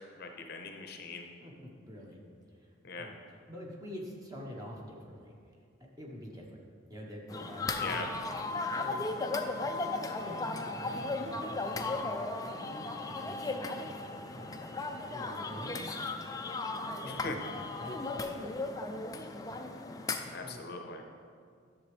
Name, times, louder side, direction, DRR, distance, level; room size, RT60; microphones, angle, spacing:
voice 1, 0.2-1.2 2.8-3.1 7.8-8.1 17.2-17.3 20.3-21.0, left 4 dB, 50° left, 3 dB, 0.7 m, -40 dB
voice 2, 1.4-2.2 2.5-6.6 6.9-9.3 9.8-14.6 14.8-18.8 19.4-19.6 20.4-20.6, equal, 20° right, -2 dB, 1.1 m, -47 dB
sound 1, 7.3-20.4, left 3 dB, 20° left, 0.4 m, -36 dB
11.5 x 6.9 x 3.3 m, 2.2 s
head